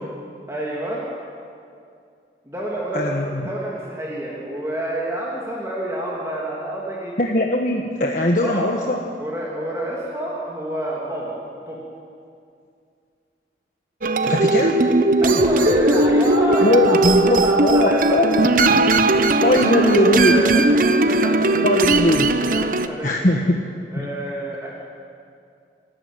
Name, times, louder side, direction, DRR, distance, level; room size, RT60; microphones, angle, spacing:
voice 1, 0.5-1.0 2.4-7.1 8.4-8.8 9.2-11.4 11.7-11.8 14.2-14.5 15.2-18.5 19.0-21.7 22.5-23.1 23.9-24.7, right 1 dB, 15° right, -5 dB, 3.0 m, -28 dB
voice 2, 2.9-3.4 7.2-9.0 14.3-14.8 16.6-18.7 19.4-20.3 21.6-22.3 23.0-23.6 24.0-24.1, left 1 dB, 45° left, 1 dB, 1.4 m, -20 dB
sound 1, 14.0-22.9, right 2 dB, 50° right, 0.9 m, -18 dB
28.5 x 14.5 x 9.2 m, 2.4 s
head